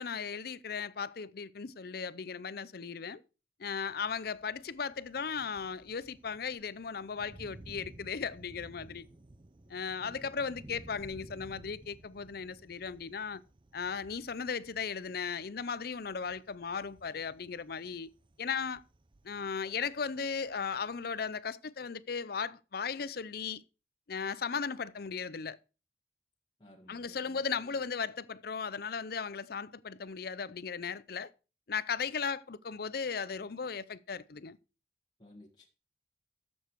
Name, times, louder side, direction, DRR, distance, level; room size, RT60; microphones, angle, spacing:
voice 1, 0.0-3.2 3.6-9.1 9.7-13.4 13.7-18.1 18.4-18.8 19.2-23.6 24.1-25.6 26.9-31.3 31.7-34.6, left 6 dB, 60° left, 0.6 m, -36 dB
Thunder, 3.9-21.4, right 1 dB, 30° right, 0.6 m, -56 dB
voice 2, 10.0-10.7 26.6-27.4 35.2-35.7, left 1 dB, 25° left, 1.6 m, -56 dB
13.0 x 7.2 x 4.6 m
head